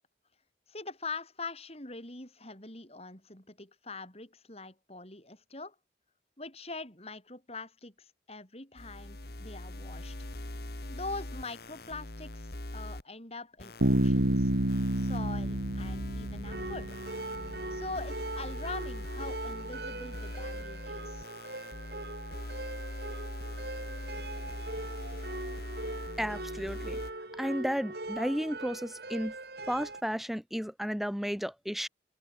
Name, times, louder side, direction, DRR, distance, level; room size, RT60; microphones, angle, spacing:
voice 1, 0.7-5.8 6.4-10.3 10.9-14.5 14.9-17.0 17.7-21.3, left 3 dB, 35° left, 7.2 m, -43 dB
sound 1, 8.8-13.0 13.6-27.1, left 1 dB, 60° left, 1.9 m, -42 dB
Bass guitar, 13.8-17.5, right 1 dB, 80° right, 2.4 m, -29 dB
sound 2, 16.4-30.0, right 2 dB, 60° right, 4.6 m, -41 dB
voice 2, 26.2-27.0 27.4-29.3 29.7-31.9, equal, ahead, 0.8 m, -33 dB
head